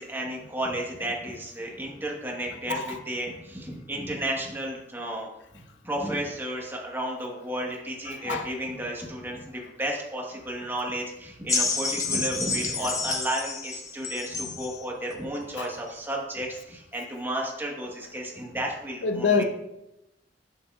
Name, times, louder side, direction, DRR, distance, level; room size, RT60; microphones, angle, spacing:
voice 1, 0.0-19.4, right 1 dB, 10° right, -1 dB, 1.2 m, -33 dB
voice 2, 8.1-8.5 15.6-15.7 19.0-19.4, left 5 dB, 80° left, 7 dB, 0.6 m, -26 dB
sound 1, 11.5-14.8 15.6-15.7, left 3 dB, 20° left, 0.8 m, -29 dB
9.3 x 6.8 x 2.4 m, 0.89 s
head